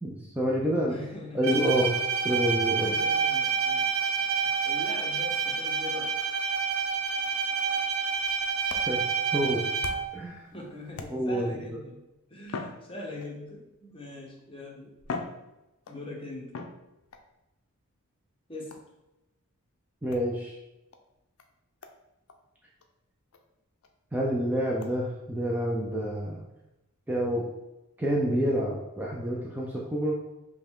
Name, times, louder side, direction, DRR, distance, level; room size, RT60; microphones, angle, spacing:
voice 1, 0.0-1.0 1.3-1.9 2.2-2.9 8.9-9.0 9.3-9.6 10.1-10.4 11.1-11.6 20.0-20.6 24.1-26.4 27.1-27.5 28.0-30.2, equal, 10° right, -3 dB, 0.4 m, -28 dB
voice 2, 0.8-1.5 2.7-3.9 4.1-6.2 10.5-12.0 12.3-14.9 15.9-16.5 18.5-18.8, left 2 dB, 25° left, -1 dB, 0.9 m, -42 dB
Bowed string instrument, 1.4-10.2, right 6 dB, 90° right, 1.0 m, -28 dB
sound 1, 8.1-10.3 10.9-11.5 12.4-13.5 14.4-14.5 15.0-16.1 16.5-17.3 18.7-19.0 20.1-20.3 20.9-21.0 21.4-21.5 21.8-22.0 22.3-22.4 22.8-22.9 23.3-23.4 23.8-23.9 24.8-24.9, left 3 dB, 70° left, 0.5 m, -41 dB
5.5 x 2.2 x 3.6 m, 0.95 s
head